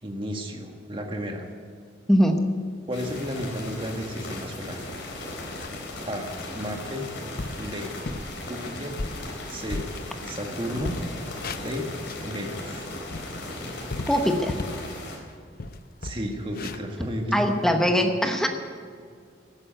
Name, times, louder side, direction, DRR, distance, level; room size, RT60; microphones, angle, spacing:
voice 1, 0.0-1.5 2.9-4.9 6.1-7.1 7.6-8.0 8.4-9.0 9.5-9.9 10.3-10.9 11.6-11.9 12.2-12.9 16.0-17.5, equal, 25° right, 2 dB, 1.7 m, -33 dB
voice 2, 2.1-2.4 14.1-14.5 17.3-18.5, equal, ahead, 4 dB, 1.0 m, -21 dB
sound 1, 2.9-15.2, left 2 dB, 80° left, 4.2 m, -37 dB
sound 2, 4.6-4.7 5.1-5.9 6.3-6.5 7.0-7.1 7.4-7.7 8.1-8.3 8.8-10.5 10.7-12.3 12.7-14.9 15.2-15.3 15.6-17.7, left 2 dB, 50° left, 0.7 m, -36 dB
15.5 x 9.6 x 9.3 m, 2.1 s
head